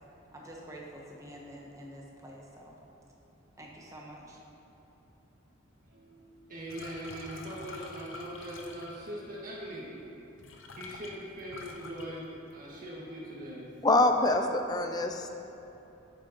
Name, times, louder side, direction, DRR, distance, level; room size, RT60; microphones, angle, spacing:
voice 1, 0.3-2.8 3.6-4.4, right 1 dB, 15° right, -2 dB, 1.1 m, -47 dB
voice 2, 5.9-9.9 10.2-10.3 10.7-13.8 14.8-15.3, equal, 45° right, -5 dB, 1.8 m, -42 dB
sound 1, 6.7-9.2 10.1-10.2 10.4-12.8 13.1-13.6 14.0-14.6, left 3 dB, 75° left, 0.6 m, -48 dB
voice 3, 13.8-15.3, left 2 dB, 20° left, 5 dB, 0.4 m, -25 dB
9.3 x 8.2 x 3.0 m, 3.0 s
head